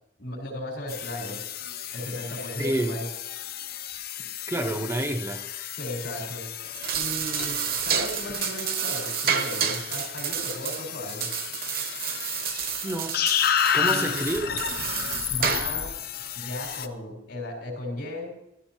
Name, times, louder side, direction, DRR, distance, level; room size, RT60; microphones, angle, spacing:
voice 1, 0.2-1.4 1.9-3.1 5.7-6.5 6.9-11.3 13.8-14.3 15.3-15.9 16.3-18.3, left 1 dB, 80° left, 4.1 m, -36 dB
sound 1, 0.9-16.9, left 9 dB, 55° left, 0.6 m, -32 dB
voice 2, 2.6-3.0 4.5-5.5 12.8-13.3 13.7-14.5, right 1 dB, 15° right, 0.5 m, -28 dB
sound 2, 6.6-15.9, right 8 dB, 55° right, 1.0 m, -30 dB
14.5 x 13.5 x 2.9 m
head